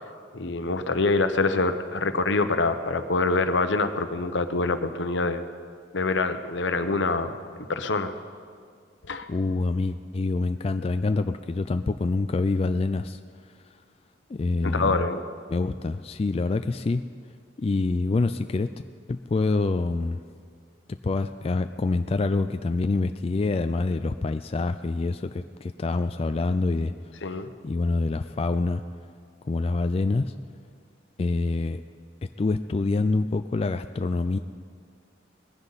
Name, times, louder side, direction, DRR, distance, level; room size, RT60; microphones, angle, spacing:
voice 1, 0.3-5.4 5.9-7.4 7.7-8.1 9.0-9.3 14.7-15.2 27.2-27.5, left 3 dB, 75° left, 9 dB, 0.9 m, -25 dB
voice 2, 9.3-13.2 14.3-15.0 15.5-17.0 17.6-18.7 19.1-20.2 20.9-26.9 27.6-28.8 29.4-30.3 31.2-31.8 32.4-34.4, left 3 dB, 30° left, 9 dB, 0.3 m, -26 dB
20.0 x 16.0 x 4.1 m, 2.1 s
head